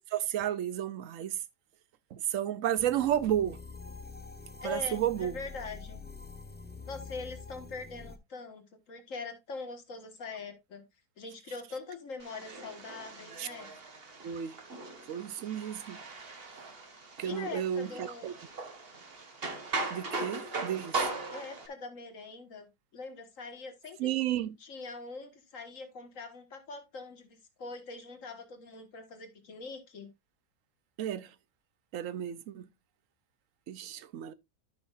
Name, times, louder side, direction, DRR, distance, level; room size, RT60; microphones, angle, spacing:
voice 1, 0.1-1.4 2.1-3.6 4.6-5.4 13.4-13.5 14.2-14.6 15.1-16.0 17.2-18.3 19.9-21.0 24.0-24.5 31.0-31.3 31.9-32.7 33.7-34.3, right 11 dB, 65° right, 1.0 m, -32 dB
sound 1, 2.8-8.2, left 4 dB, 10° left, 0.5 m, -46 dB
voice 2, 4.6-6.0 6.9-10.8 11.2-13.7 17.2-18.3 21.3-24.1 24.6-30.1, left 4 dB, 55° left, 2.0 m, -43 dB
sound 2, 12.2-21.7, right 3 dB, 40° right, 1.6 m, -39 dB
12.5 x 6.1 x 2.5 m
omnidirectional pair, 1.7 m